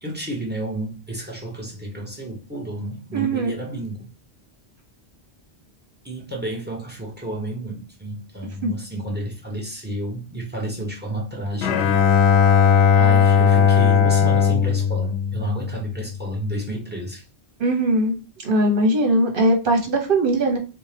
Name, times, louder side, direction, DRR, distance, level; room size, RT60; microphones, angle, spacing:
voice 1, 0.0-4.1 6.0-12.0 13.0-17.2, right 1 dB, 10° right, 1.0 m, -31 dB
voice 2, 3.1-3.5 8.6-8.7 17.6-18.2 18.4-20.6, right 1 dB, 55° right, 1.2 m, -20 dB
Bowed string instrument, 11.6-16.0, left 7 dB, 85° left, 0.9 m, -17 dB
4.4 x 2.2 x 3.3 m
omnidirectional pair, 1.1 m